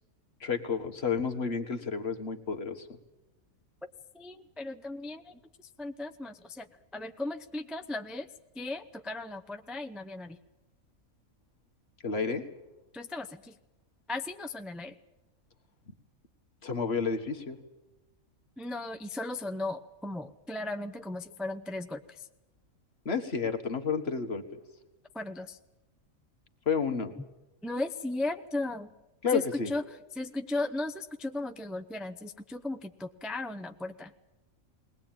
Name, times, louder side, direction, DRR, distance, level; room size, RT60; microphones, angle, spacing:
voice 1, 0.4-2.9 12.0-12.5 16.6-17.6 23.0-24.6 26.6-27.1 29.2-29.7, left 5 dB, 50° left, 5 dB, 1.8 m, -31 dB
voice 2, 4.1-5.4 5.8-6.7 6.9-8.3 8.5-10.4 12.9-13.6 14.1-15.0 18.6-22.3 25.1-25.6 27.2-27.3 27.6-28.9 29.3-29.8 30.1-34.1, left 2 dB, ahead, 5 dB, 0.5 m, -36 dB
21.0 x 18.5 x 9.1 m, 1.0 s
omnidirectional pair, 1.5 m